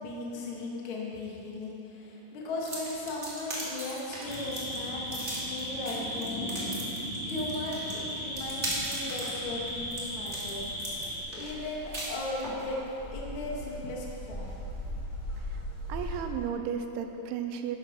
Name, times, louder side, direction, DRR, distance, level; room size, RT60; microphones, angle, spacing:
voice 1, 0.0-6.6 6.9-10.7 11.0-12.8 13.1-14.6, left 2 dB, 85° left, -3 dB, 1.1 m, -37 dB
sound 1, 2.6-12.6, right 1 dB, 40° right, 0.9 m, -38 dB
sound 2, 4.2-11.2, equal, 60° left, 5.2 m, -36 dB
sound 3, 8.3-16.2, left 1 dB, 15° left, 0.6 m, -41 dB
voice 2, 15.9-17.8, right 7 dB, 85° right, 6 dB, 2.9 m, -34 dB
11.5 x 11.0 x 6.1 m, 3.0 s
omnidirectional pair, 5.6 m